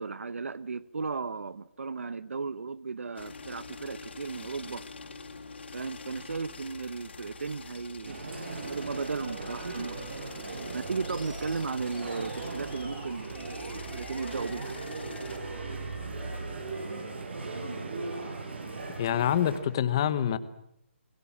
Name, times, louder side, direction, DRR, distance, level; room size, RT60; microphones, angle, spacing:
voice 1, 0.0-4.8 5.7-8.2 8.5-10.2 10.7-14.7, right 4 dB, 80° right, 16 dB, 1.0 m, -35 dB
sound 1, 3.2-15.4, left 4 dB, 55° left, 4.3 m, -46 dB
sound 2, 8.0-19.6, right 3 dB, 55° right, 7.6 m, -38 dB
Animal, 11.0-19.2, right 1 dB, 5° right, 4.7 m, -49 dB
voice 2, 19.0-20.4, left 10 dB, 20° left, 15 dB, 1.0 m, -26 dB
29.0 x 22.0 x 7.3 m, 0.75 s
hypercardioid pair, 180°, 7 cm